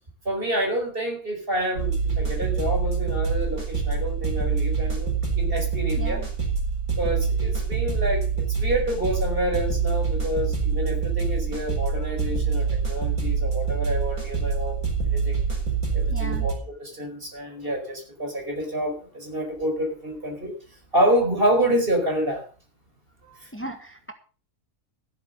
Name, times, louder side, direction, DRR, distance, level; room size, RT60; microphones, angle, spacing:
voice 1, 0.3-6.2 7.0-14.8 15.1-15.4 15.9-20.5 20.9-22.4 23.2-23.5, right 1 dB, 35° right, 1 dB, 5.2 m, -28 dB
sound 1, 1.8-16.5, right 5 dB, 75° right, 4.6 m, -25 dB
voice 2, 16.1-16.5 23.5-24.1, right 2 dB, 10° left, 5 dB, 1.6 m, -36 dB
14.0 x 8.2 x 6.6 m, 0.38 s
omnidirectional pair, 1.6 m